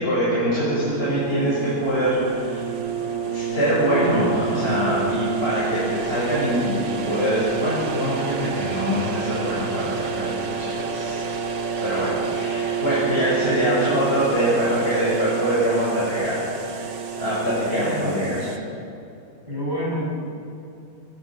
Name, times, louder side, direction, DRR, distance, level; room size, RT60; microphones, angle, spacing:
voice 1, 0.0-2.6 3.3-11.2 11.8-16.8 17.1-18.4, equal, 30° left, -8 dB, 7.1 m, -23 dB
sound 1, 0.7-18.6, right 6 dB, 60° right, 1.9 m, -29 dB
voice 2, 17.9-18.6 19.5-20.3, equal, 20° right, -6 dB, 6.8 m, -29 dB
24.0 x 22.5 x 6.3 m, 2.7 s
omnidirectional pair, 2.3 m